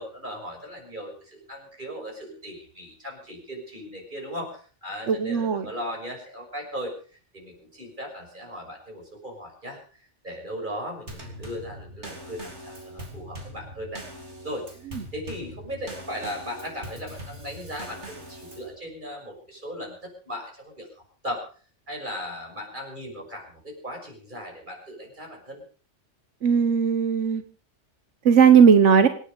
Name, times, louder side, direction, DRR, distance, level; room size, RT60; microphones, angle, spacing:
voice 1, 0.0-6.9 7.3-9.8 10.2-14.0 14.4-14.7 15.1-21.4 21.9-25.6, equal, 40° right, 1 dB, 6.5 m, -37 dB
voice 2, 5.1-5.7 26.4-27.4 28.2-29.1, right 7 dB, 90° right, 10 dB, 1.3 m, -17 dB
Drum kit / Snare drum / Bass drum, 11.1-18.8, right 1 dB, 70° right, 3.7 m, -42 dB
26.0 x 9.8 x 5.3 m, 0.41 s
omnidirectional pair, 1.2 m